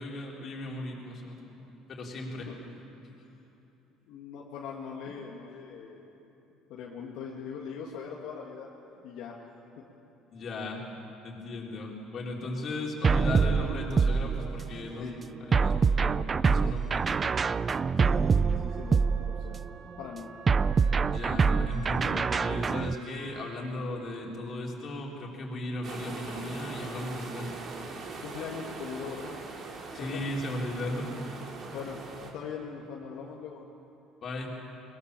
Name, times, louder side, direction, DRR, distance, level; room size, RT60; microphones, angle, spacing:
voice 1, 0.0-1.6 1.9-2.5 10.3-17.0 21.1-27.5 29.9-31.1 34.2-34.5, left 2 dB, 40° left, -1 dB, 4.0 m, -36 dB
voice 2, 2.2-2.5 4.1-6.0 6.7-8.7 9.0-9.5 15.0-15.3 18.0-19.6 20.0-20.3 28.2-29.4 30.0-30.2 31.7-32.0 32.3-33.6, left 6 dB, 70° left, -3 dB, 2.2 m, -41 dB
sound 1, 13.0-14.8 15.5-19.7 20.5-22.9, right 5 dB, 25° right, 0.4 m, -25 dB
Wind instrument woodwind instrument, 18.7-23.8, right 6 dB, 75° right, 2.1 m, -49 dB
sound 2, 25.8-32.3, right 4 dB, 45° right, 3.1 m, -41 dB
22.5 x 21.0 x 7.0 m, 3.0 s
cardioid pair, 125°, 0 cm